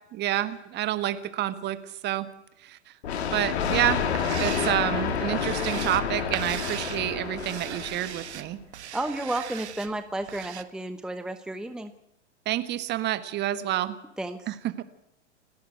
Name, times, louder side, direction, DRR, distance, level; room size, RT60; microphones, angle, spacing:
voice 1, 0.1-2.3 2.6-2.8 3.3-4.0 4.4-8.6 12.4-13.9 14.5-14.8, right 13 dB, 30° right, 12 dB, 1.6 m, -28 dB
Thunder, 3.0-8.4, left 7 dB, 65° left, 3.1 m, -29 dB
sound 1, 3.9-10.6, right 10 dB, 65° right, 1.5 m, -39 dB
voice 2, 8.9-11.9 14.2-14.5, right 1 dB, ahead, 9 dB, 1.0 m, -32 dB
29.0 x 11.5 x 8.1 m, 0.86 s
figure-of-eight pair, 105°, 36 cm